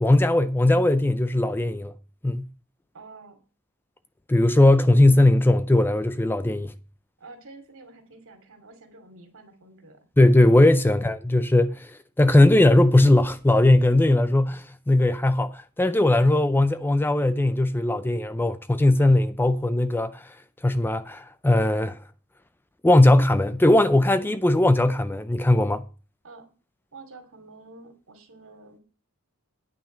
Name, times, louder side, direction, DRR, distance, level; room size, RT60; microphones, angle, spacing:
voice 1, 0.0-1.9 2.2-2.5 4.3-6.7 10.2-20.4 20.6-22.0 22.8-25.8, left 1 dB, 10° left, 0.4 m, -19 dB
voice 2, 2.9-3.4 7.2-10.0 26.2-26.5 26.9-28.8, right 3 dB, 65° right, 2.8 m, -48 dB
9.6 x 5.7 x 7.3 m
head